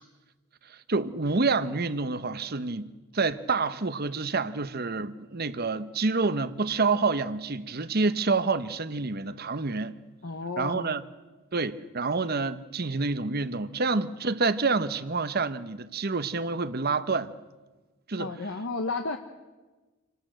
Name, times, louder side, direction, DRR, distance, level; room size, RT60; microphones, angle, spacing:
voice 1, 0.6-9.9 10.6-11.0 11.5-17.3 18.1-18.3, right 4 dB, 45° right, 0.9 m, -28 dB
voice 2, 10.2-10.9 18.2-19.2, left 3 dB, 60° left, 1.1 m, -32 dB
27.5 x 18.0 x 7.8 m
head